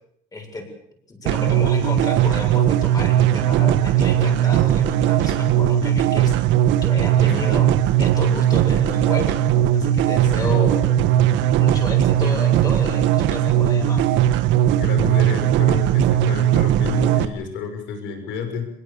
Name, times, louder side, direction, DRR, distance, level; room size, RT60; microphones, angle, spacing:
voice 1, 0.3-0.7 1.1-6.4 6.8-7.7 8.0-9.4 9.7-10.8 11.6-14.1, left 2 dB, 20° left, 2 dB, 7.5 m, -32 dB
sound 1, 1.3-17.3, right 11 dB, 75° right, 1.8 m, -18 dB
voice 2, 7.3-7.6 10.4-10.6 14.8-18.7, left 6 dB, 75° left, 6 dB, 6.3 m, -30 dB
25.0 x 21.5 x 7.2 m, 0.73 s
cardioid pair, 135°, 19 cm